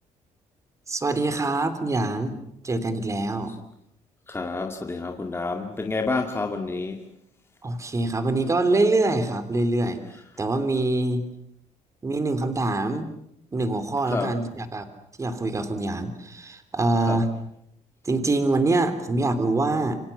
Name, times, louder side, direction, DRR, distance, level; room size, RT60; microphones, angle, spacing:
voice 1, 0.9-2.4 2.6-3.5 7.6-10.0 10.4-11.2 12.0-13.1 13.5-14.8 15.2-17.3 18.0-20.0, right 2 dB, 25° right, 3.3 m, -24 dB
voice 2, 4.3-7.0 14.1-14.3 17.1-17.2, left 3 dB, 20° left, 2.2 m, -29 dB
28.0 x 26.0 x 7.2 m
cardioid pair, 115°, 13 cm